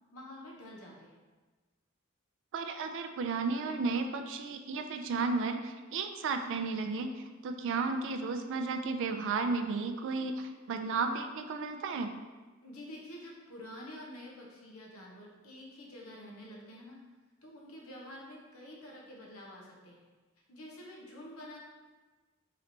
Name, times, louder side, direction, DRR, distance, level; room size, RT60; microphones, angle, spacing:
voice 1, 0.1-1.2 12.6-17.0 17.4-20.0 20.5-21.6, left 1 dB, 75° left, -2 dB, 0.9 m, -48 dB
voice 2, 2.5-12.1, right 4 dB, 60° right, 6 dB, 0.3 m, -33 dB
3.2 x 2.9 x 3.8 m, 1.3 s
head